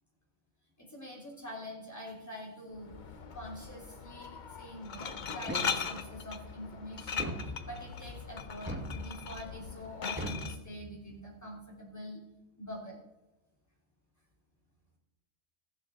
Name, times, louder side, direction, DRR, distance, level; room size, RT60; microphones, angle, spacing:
voice 1, 0.8-2.9 3.3-7.3 7.6-12.2 12.6-13.0, equal, 10° left, -2 dB, 3.3 m, -45 dB
Glass, 2.7-10.6, left 6 dB, 45° left, 0.8 m, -39 dB
sound 1, 5.5-6.2 7.2-8.0 8.7-9.5 10.2-11.2, equal, 10° right, 1.3 m, -40 dB
14.5 x 9.7 x 4.0 m, 1.0 s
omnidirectional pair, 1.4 m